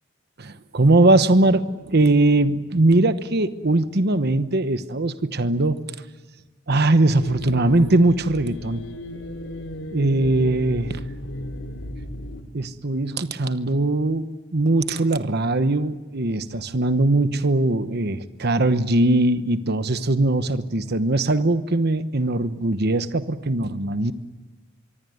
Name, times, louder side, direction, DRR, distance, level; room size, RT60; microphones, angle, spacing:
voice 1, 0.4-5.8 6.7-8.8 9.9-11.0 12.5-24.1, right 2 dB, 55° right, 11 dB, 1.1 m, -20 dB
sound 1, 7.2-12.4, left 1 dB, 80° left, 2.9 m, -35 dB
25.0 x 24.0 x 9.4 m, 1.2 s
head